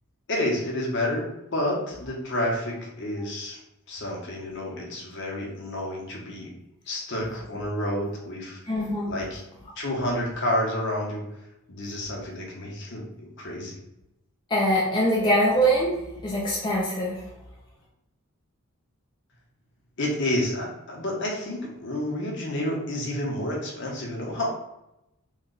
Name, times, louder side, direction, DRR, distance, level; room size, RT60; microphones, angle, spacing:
voice 1, 0.3-3.6 3.9-6.5 6.9-8.6 9.1-9.4 9.8-11.3 11.7-13.8 20.0-24.5, left 1 dB, 55° left, -2 dB, 0.9 m, -29 dB
voice 2, 8.6-9.1 14.5-17.2, equal, 20° left, -5 dB, 0.5 m, -23 dB
3.1 x 2.3 x 3.8 m, 0.88 s
head